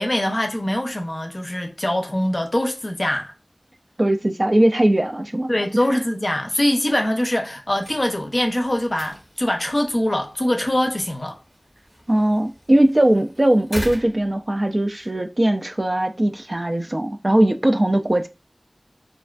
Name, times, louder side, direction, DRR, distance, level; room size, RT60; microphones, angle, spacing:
voice 1, 0.0-3.3 5.5-11.4, left 1 dB, 40° left, 0.5 m, -23 dB
voice 2, 4.0-5.5 12.1-18.3, right 1 dB, 45° right, 0.3 m, -19 dB
sound 1, 7.6-15.1, equal, ahead, 0.8 m, -40 dB
2.4 x 2.3 x 2.3 m
wide cardioid pair, 40°, 0 cm